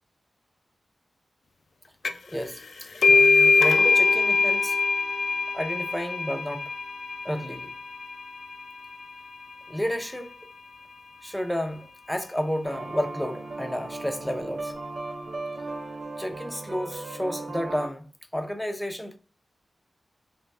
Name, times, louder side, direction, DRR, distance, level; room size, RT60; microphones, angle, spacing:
sound 1, 2.0-2.4 2.6-9.9, left 4 dB, 70° left, 0.4 m, -23 dB
voice 1, 2.2-2.6 3.1-4.8 5.5-6.7 7.2-7.7 9.7-10.4 11.2-14.8 16.2-19.2, equal, 5° left, 0.5 m, -31 dB
sound 2, 12.6-17.9, right 2 dB, 75° right, 0.8 m, -36 dB
3.5 x 3.0 x 2.4 m
wide cardioid pair, 75°, 0 cm